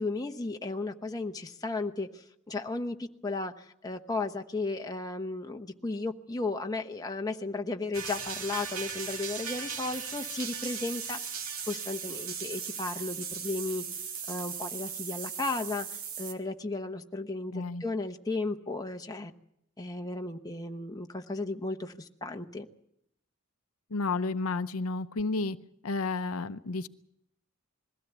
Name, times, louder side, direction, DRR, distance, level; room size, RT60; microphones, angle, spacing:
voice 1, 0.0-13.8 14.3-19.3 19.8-22.7, left 3 dB, 15° left, 4 dB, 1.0 m, -35 dB
sound 1, 7.9-16.3, right 6 dB, 75° right, 2.1 m, -38 dB
voice 2, 17.5-17.8 23.9-25.6 25.8-26.9, left 3 dB, 80° left, 11 dB, 0.7 m, -31 dB
21.5 x 16.5 x 8.2 m, 0.78 s
head